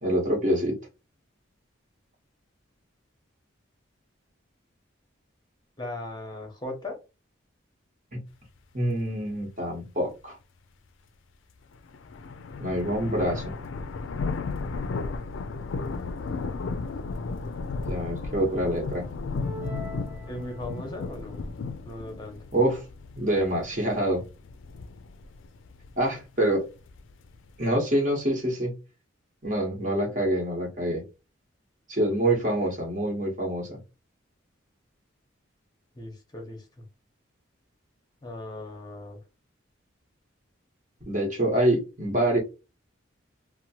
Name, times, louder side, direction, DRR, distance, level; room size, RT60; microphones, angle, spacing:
voice 1, 0.0-0.8 8.1-8.2 8.7-10.4 12.6-13.6 17.9-19.1 22.5-22.8 23.2-24.2 26.0-26.7 27.6-28.7 29.4-31.0 31.9-33.8 41.1-42.4, right 1 dB, 40° right, -1 dB, 1.1 m, -26 dB
voice 2, 5.8-7.0 20.3-21.4 21.8-22.4 35.9-36.8 38.2-39.2, left 1 dB, 20° left, 3 dB, 0.8 m, -38 dB
sound 1, 11.7-27.7, left 3 dB, 70° left, 0.4 m, -35 dB
sound 2, 19.4-21.1, left 1 dB, 10° right, 0.3 m, -42 dB
2.8 x 2.1 x 2.8 m, 0.28 s
head